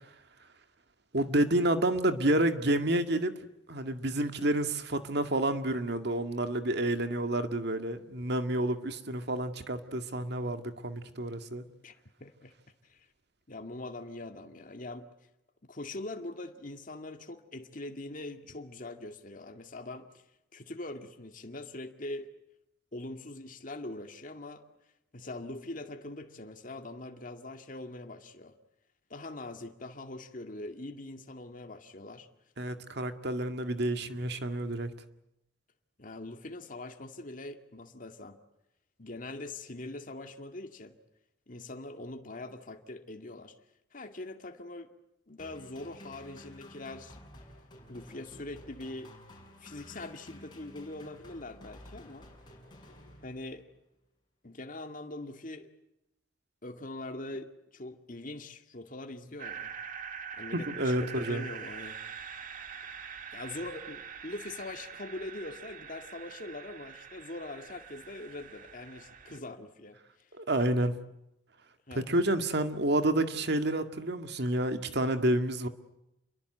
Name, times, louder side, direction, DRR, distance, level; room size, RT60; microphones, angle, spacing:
voice 1, 1.1-3.4 3.7-11.6 32.6-34.9 60.5-61.5 70.4-71.0 72.0-75.7, right 1 dB, 60° right, 2.0 m, -29 dB
voice 2, 11.8-12.5 12.9-13.1 13.5-15.1 15.6-20.1 20.5-22.3 22.9-24.6 25.1-28.6 29.1-32.3 36.0-38.4 39.0-40.9 41.5-43.6 43.9-44.9 45.3-47.2 47.9-49.1 49.6-52.3 53.2-53.6 54.4-55.7 56.6-59.7 60.4-62.0 63.3-70.0 71.9-72.1, left 2 dB, 45° left, 2.2 m, -42 dB
sound 1, 45.4-53.7, left 1 dB, 25° left, 6.2 m, -52 dB
sound 2, 59.4-69.4, right 7 dB, 45° right, 2.2 m, -44 dB
28.5 x 22.5 x 8.0 m
head